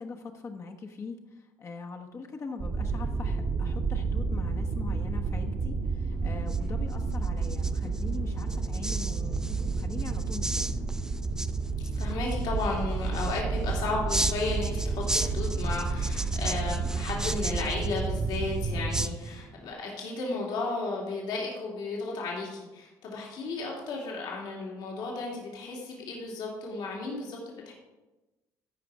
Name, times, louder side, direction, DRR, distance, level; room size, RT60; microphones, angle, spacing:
voice 1, 0.0-10.8, left 4 dB, 40° left, 3 dB, 1.1 m, -42 dB
sound 1, 2.6-19.1, right 4 dB, 50° right, 1.5 m, -30 dB
sound 2, 6.1-19.7, right 1 dB, 10° right, 0.5 m, -38 dB
voice 2, 12.0-27.7, left 3 dB, 75° left, -3 dB, 2.6 m, -34 dB
13.5 x 5.0 x 4.8 m, 1.1 s
supercardioid pair, 75°, 8 cm